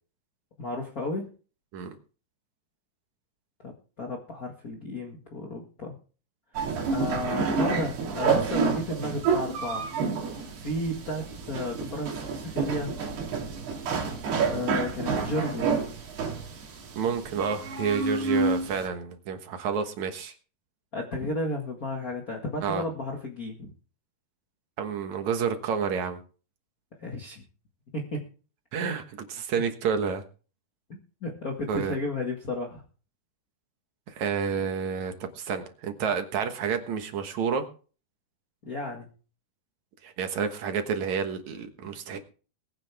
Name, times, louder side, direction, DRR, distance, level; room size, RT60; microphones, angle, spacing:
voice 1, 0.6-1.3 3.6-5.9 6.6-9.9 10.6-13.0 14.5-15.7 20.9-23.7 27.0-27.4 27.9-28.2 31.2-32.8 38.6-39.1, left 1 dB, 50° left, 0 dB, 1.1 m, -33 dB
sound 1, 6.5-18.9, right 5 dB, 75° right, 4.7 m, -29 dB
voice 2, 17.0-20.3 22.6-22.8 24.8-26.2 28.7-30.2 31.7-32.0 34.1-37.7 40.0-42.2, right 6 dB, 60° right, 6 dB, 2.2 m, -29 dB
22.0 x 9.1 x 3.5 m, 0.38 s
omnidirectional pair, 4.6 m